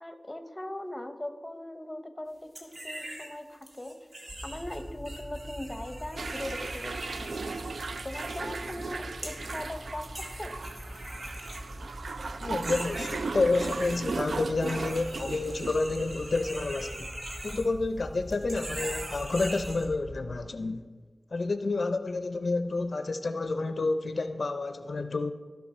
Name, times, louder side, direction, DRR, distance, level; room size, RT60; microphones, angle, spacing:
voice 1, 0.0-4.0 4.4-7.6 8.0-10.6, left 1 dB, 20° left, 8 dB, 0.8 m, -40 dB
sound 1, 2.5-3.3 3.6-8.9 9.2-9.7 10.0-12.2 12.5-14.0 14.6-18.0 18.3-19.8, right 1 dB, 65° right, 1.8 m, -42 dB
sound 2, 4.3-20.4, equal, 35° right, 1.7 m, -43 dB
sound 3, 6.2-16.7, right 4 dB, 85° right, 0.3 m, -37 dB
voice 2, 12.4-17.1 17.4-20.8 21.3-25.3, left 3 dB, 70° left, 9 dB, 0.4 m, -29 dB
15.0 x 5.8 x 4.3 m, 1.5 s
wide cardioid pair, 70°, 0 cm